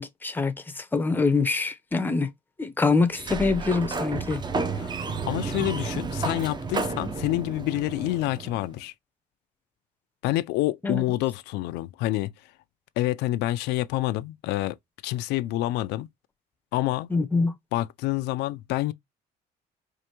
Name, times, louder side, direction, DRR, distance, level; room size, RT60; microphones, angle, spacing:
voice 1, 0.0-2.3 2.6-4.4 10.8-11.0 17.1-17.5, left 4 dB, 10° left, 0.6 m, -25 dB
Sliding door, 3.1-8.7, right 4 dB, 25° right, 0.7 m, -31 dB
voice 2, 5.3-8.9 10.2-12.3 13.0-14.8 15.0-16.1 16.7-17.1 17.7-18.9, left 16 dB, 85° left, 0.4 m, -27 dB
4.5 x 2.5 x 2.8 m
cardioid pair, 110°, 17 cm